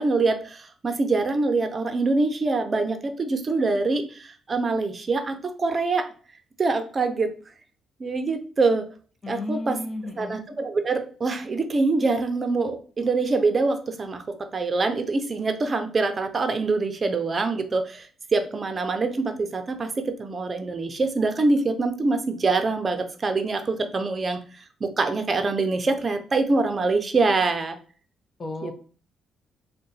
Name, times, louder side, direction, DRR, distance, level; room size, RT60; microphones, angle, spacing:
voice 1, 0.0-6.1 6.6-7.3 8.0-8.8 9.3-9.8 10.2-18.1 18.3-24.4 24.8-27.8 28.6-28.7, right 3 dB, 35° right, 7 dB, 0.6 m, -24 dB
voice 2, 9.2-10.3 28.4-28.7, left 2 dB, 35° left, 7 dB, 0.7 m, -32 dB
3.8 x 2.2 x 3.9 m, 0.40 s
cardioid pair, 90°, 0 cm